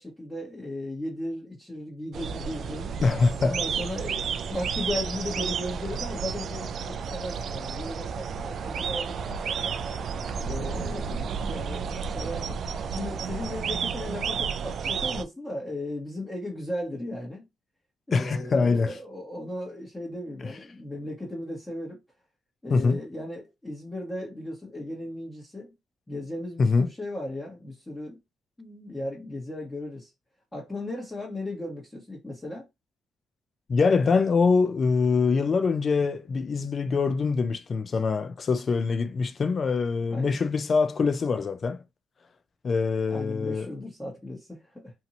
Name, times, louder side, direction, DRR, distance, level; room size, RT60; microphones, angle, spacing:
voice 1, 0.0-2.9 3.4-9.8 10.4-12.6 12.9-17.4 18.1-22.0 22.6-25.7 26.1-28.2 28.6-30.1 30.5-32.7 40.1-40.4 43.1-44.9, left 1 dB, 10° left, 1.2 m, -36 dB
sound 1, 2.1-15.2, right 6 dB, 60° right, 0.3 m, -32 dB
voice 2, 3.0-3.6 18.1-19.0 22.7-23.0 26.6-26.9 33.7-41.8 42.6-43.7, left 4 dB, 45° left, 0.4 m, -24 dB
2.7 x 2.5 x 2.8 m
cardioid pair, 90°, 0 cm